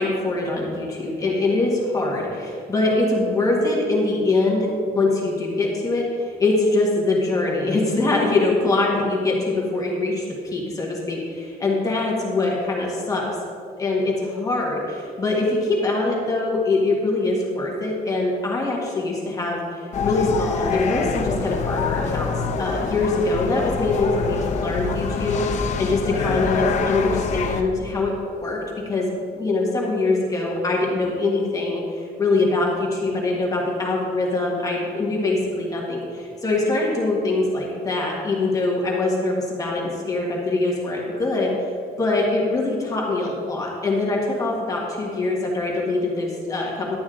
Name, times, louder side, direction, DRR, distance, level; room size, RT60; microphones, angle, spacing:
voice 1, 0.0-4.7 4.9-13.2 13.8-28.1 28.4-28.6 28.8-41.5 42.0-47.0, left 2 dB, 20° left, -3 dB, 1.6 m, -23 dB
sound 1, 19.9-27.6, left 5 dB, 45° left, 0.7 m, -25 dB
11.5 x 8.5 x 3.8 m, 2.3 s
cardioid pair, 175°, 16 cm